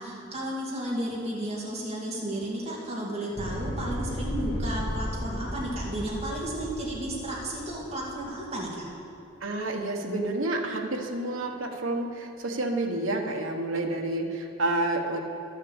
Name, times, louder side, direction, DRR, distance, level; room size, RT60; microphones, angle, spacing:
voice 1, 0.0-8.9, right 1 dB, 30° right, -5 dB, 2.5 m, -33 dB
sound 1, 3.4-8.6, equal, 45° left, 1.9 m, -35 dB
voice 2, 9.4-15.2, right 2 dB, 75° right, 2 dB, 1.2 m, -29 dB
12.5 x 6.5 x 7.1 m, 2.8 s
head